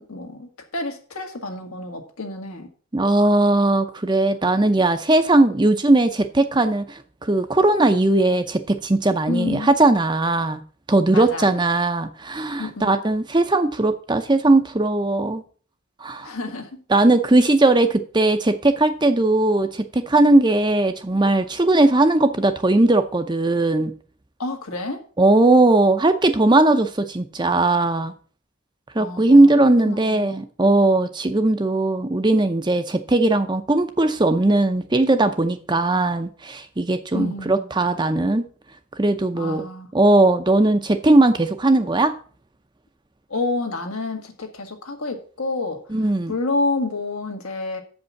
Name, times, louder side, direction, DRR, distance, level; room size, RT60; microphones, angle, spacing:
voice 1, 0.0-2.7 9.3-9.7 11.1-11.5 12.6-13.0 16.2-16.7 24.4-25.0 29.0-29.5 29.9-30.3 37.1-37.7 39.3-39.9 43.3-45.8 46.3-47.8, left 3 dB, 80° left, 3 dB, 1.8 m, -29 dB
voice 2, 2.9-10.6 10.9-15.4 16.0-16.3 16.9-23.9 25.2-28.1 28.9-38.5 39.0-39.6 39.9-42.1 45.9-46.3, right 2 dB, 20° right, 9 dB, 0.6 m, -18 dB
7.4 x 5.3 x 7.0 m, 0.42 s
head